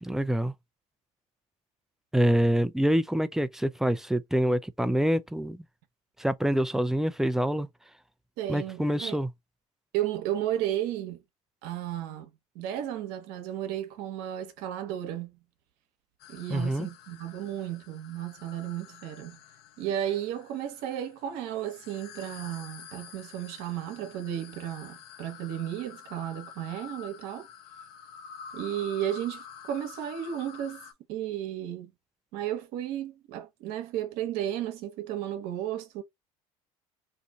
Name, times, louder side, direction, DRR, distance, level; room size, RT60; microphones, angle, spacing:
voice 1, 0.0-0.5 2.1-5.6 6.2-7.7 8.5-9.3 16.5-16.9, right 1 dB, ahead, 0.4 m, -26 dB
voice 2, 8.4-9.2 9.9-11.2 11.6-15.4 16.3-19.4 19.8-27.5 28.5-30.8 31.1-31.9 32.3-36.0, right 11 dB, 70° right, 1.0 m, -34 dB
sound 1, 16.2-30.9, left 8 dB, 65° left, 0.8 m, -48 dB
2.7 x 2.5 x 3.7 m
hypercardioid pair, 80°, 18 cm